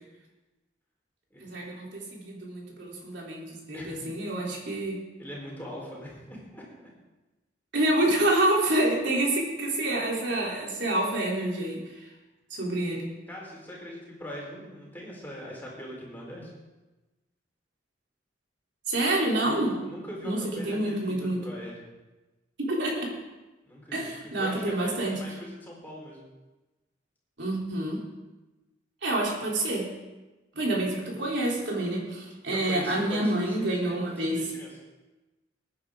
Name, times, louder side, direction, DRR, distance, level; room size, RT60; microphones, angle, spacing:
voice 1, 1.4-5.0 7.7-12.1 12.5-13.1 18.9-19.7 20.2-20.4 20.6-21.4 22.6-23.1 23.9-25.2 27.4-28.0 29.0-29.9 30.5-34.5, right 1 dB, 75° right, -3 dB, 3.4 m, -27 dB
voice 2, 3.7-4.0 4.4-4.6 5.2-6.9 13.3-16.5 19.4-21.9 23.6-26.2 32.5-34.8, equal, 10° left, -4 dB, 4.1 m, -41 dB
20.0 x 9.8 x 3.8 m, 1.1 s
head